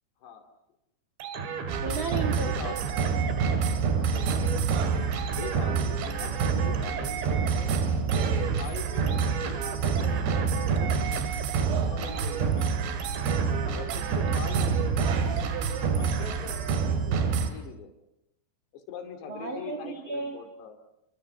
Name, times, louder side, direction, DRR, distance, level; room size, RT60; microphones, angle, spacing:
sound 1, 1.2-16.9, right 6 dB, 85° right, 4.5 m, -36 dB
sound 2, 1.7-17.5, right 6 dB, 70° right, 4.0 m, -27 dB
voice 1, 1.8-2.8 4.9-5.5 19.3-20.4, right 3 dB, 50° right, 5 dB, 1.6 m, -35 dB
voice 2, 2.4-2.8 3.5-4.7 5.4-7.8 8.5-11.3 11.9-12.8 13.6-15.1 15.9-17.9 18.7-20.8, left 7 dB, 75° left, 6 dB, 4.6 m, -43 dB
30.0 x 24.0 x 6.0 m, 0.87 s
omnidirectional pair, 5.0 m